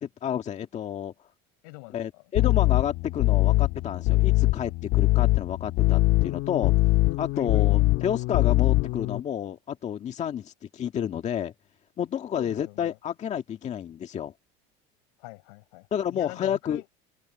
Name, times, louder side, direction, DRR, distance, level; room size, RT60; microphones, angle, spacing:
voice 1, 0.0-1.1 1.9-6.8 7.2-11.5 12.0-14.3 15.9-17.0, left 9 dB, 35° left, 1.9 m, -30 dB
voice 2, 1.6-2.2 7.3-7.8 12.4-13.0 15.2-16.9, left 31 dB, 85° left, 7.0 m, -44 dB
sound 1, 2.4-9.2, left 19 dB, 70° left, 2.1 m, -22 dB
open air
cardioid pair, 135°, 20 cm